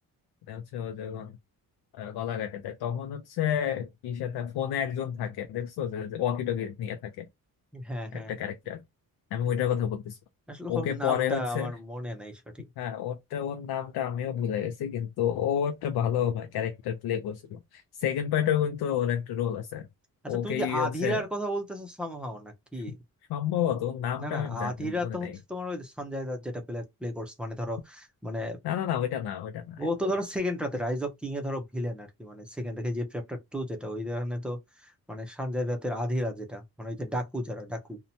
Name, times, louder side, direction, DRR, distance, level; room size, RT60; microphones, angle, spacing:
voice 1, 0.5-1.3 1.9-7.3 8.1-8.8 9.3-10.2 10.7-11.7 12.8-19.9 20.3-21.2 23.3-25.3 28.6-30.1, left 9 dB, 80° left, 0.5 m, -30 dB
voice 2, 7.7-8.3 10.5-12.4 20.2-23.0 24.2-28.6 29.8-38.0, equal, 5° right, 0.5 m, -33 dB
2.8 x 2.1 x 2.6 m
cardioid pair, 155°, 37 cm